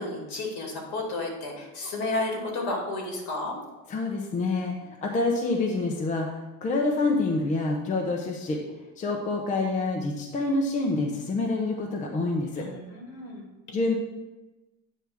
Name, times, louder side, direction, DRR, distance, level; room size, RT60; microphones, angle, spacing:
voice 1, 0.0-3.6 12.6-13.4, left 2 dB, 60° left, 0 dB, 2.4 m, -32 dB
voice 2, 3.9-12.7 13.7-14.0, left 3 dB, 20° left, 1 dB, 0.6 m, -27 dB
9.1 x 3.5 x 6.0 m, 1.1 s
cardioid pair, 160°, 34 cm